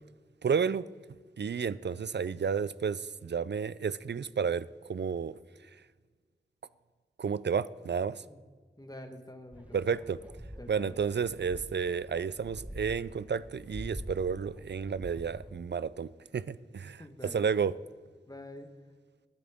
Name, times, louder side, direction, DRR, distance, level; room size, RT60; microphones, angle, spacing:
voice 1, 0.4-0.9 1.4-5.4 7.2-8.2 9.7-10.2 10.7-17.7, right 6 dB, 65° right, 18 dB, 0.4 m, -31 dB
voice 2, 8.8-10.1 10.6-11.0 17.0-17.4 18.3-18.8, left 1 dB, 20° left, 5 dB, 1.2 m, -47 dB
sound 1, 9.5-15.5, equal, 5° right, 1.1 m, -46 dB
19.5 x 10.0 x 3.6 m, 1.5 s
wide cardioid pair, 55°, 19 cm